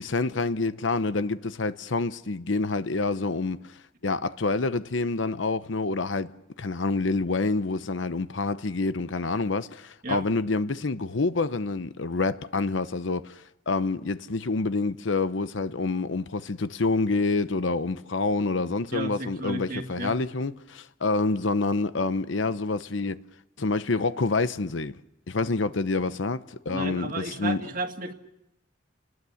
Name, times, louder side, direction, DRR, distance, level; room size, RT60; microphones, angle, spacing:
voice 1, 0.0-3.6 4.0-6.3 6.6-23.2 23.6-25.0 25.3-27.6, left 3 dB, 75° left, 0.8 m, -27 dB
voice 2, 18.9-20.2 26.7-28.1, right 2 dB, 45° right, 2.0 m, -33 dB
29.5 x 20.5 x 7.1 m
head